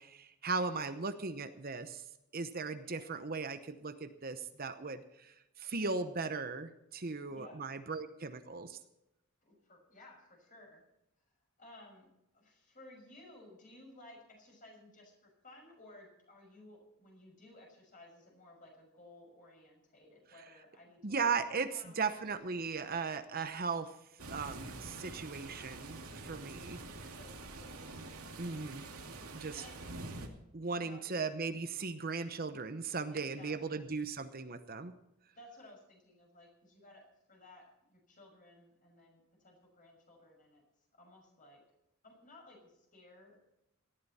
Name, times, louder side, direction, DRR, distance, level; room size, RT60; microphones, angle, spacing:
voice 1, 0.0-2.0 2.3-8.8 21.0-23.9 24.3-26.8 28.4-28.8 29.3-29.6 30.5-34.9, right 4 dB, 40° right, 9 dB, 0.9 m, -37 dB
voice 2, 7.3-7.7 9.4-10.8 11.6-12.1 12.3-22.5 27.1-28.7 29.5-30.0 30.7-31.2 33.1-33.9 35.4-40.6 40.9-41.6 42.0-43.4, left 1 dB, 40° left, 1 dB, 6.2 m, -58 dB
sound 1, 24.2-30.3, right 2 dB, 90° right, 2.5 m, -46 dB
18.5 x 13.0 x 4.2 m, 0.87 s
head